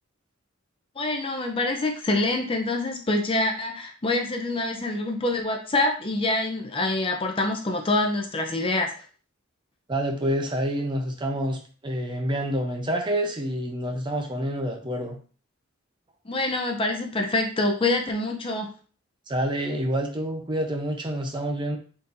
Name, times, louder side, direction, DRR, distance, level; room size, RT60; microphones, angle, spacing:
voice 1, 1.0-8.9 16.3-18.7, left 2 dB, 25° left, 3 dB, 0.5 m, -26 dB
voice 2, 9.9-15.2 19.3-21.8, right 1 dB, 25° right, 3 dB, 0.7 m, -28 dB
4.2 x 3.9 x 2.6 m, 0.39 s
head